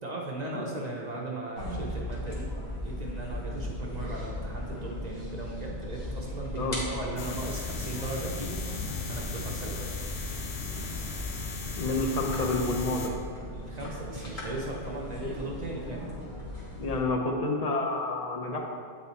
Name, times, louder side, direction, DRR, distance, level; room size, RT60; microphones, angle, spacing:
voice 1, 0.0-2.5 2.8-9.9 13.5-16.1, right 2 dB, 40° right, -2 dB, 0.7 m, -38 dB
sound 1, 1.6-17.0, left 1 dB, 55° left, 1.7 m, -37 dB
sound 2, 7.2-13.1, left 5 dB, 80° left, 1.0 m, -37 dB
voice 2, 11.8-13.1 16.8-18.7, left 2 dB, 40° left, 2 dB, 0.7 m, -29 dB
8.5 x 4.2 x 4.1 m, 2.2 s
omnidirectional pair, 1.2 m